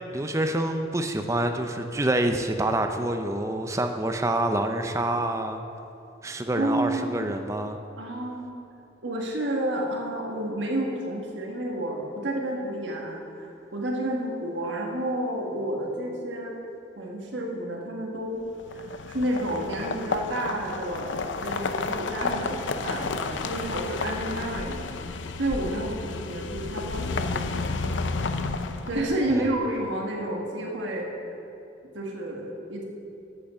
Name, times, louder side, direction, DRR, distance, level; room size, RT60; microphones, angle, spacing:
voice 1, 0.0-5.6 6.2-7.8 29.3-29.5, right 1 dB, 15° right, 6 dB, 0.5 m, -27 dB
voice 2, 6.6-7.2 8.0-8.5 9.0-16.5 17.0-18.4 18.7-24.9 25.4-28.0 28.9-31.1 31.9-32.8, right 1 dB, 75° right, -1 dB, 1.5 m, -30 dB
sound 1, 18.6-29.4, left 4 dB, 75° left, 0.5 m, -31 dB
8.6 x 7.9 x 7.0 m, 2.8 s
head